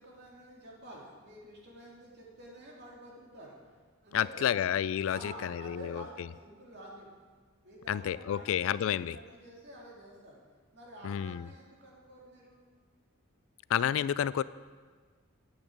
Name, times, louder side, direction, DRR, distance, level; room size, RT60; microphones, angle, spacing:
voice 1, 0.0-3.6 4.0-4.6 5.0-7.1 7.6-10.4 10.7-12.6, right 1 dB, 50° right, -3 dB, 3.1 m, -49 dB
voice 2, 4.1-6.0 7.9-9.2 11.0-11.4 13.7-14.4, left 9 dB, 65° left, 17 dB, 0.3 m, -30 dB
8.8 x 8.7 x 8.0 m, 1.5 s
head